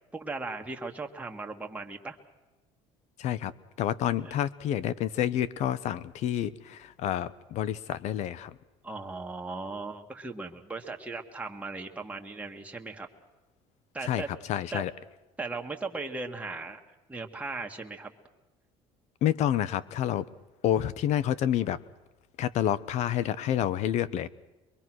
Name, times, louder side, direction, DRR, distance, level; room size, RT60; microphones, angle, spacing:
voice 1, 0.1-2.2 4.2-4.4 8.8-13.1 13.9-14.3 14.7-14.8 15.4-16.8 17.1-18.1, right 3 dB, 10° right, 2 dB, 2.0 m, -37 dB
voice 2, 3.2-3.5 3.8-8.6 14.0-14.2 14.5-14.9 19.2-20.3 20.6-21.8 22.4-24.3, left 11 dB, 60° left, 19 dB, 0.9 m, -28 dB
23.5 x 22.5 x 6.3 m, 1.1 s
cardioid pair, 110°, 13 cm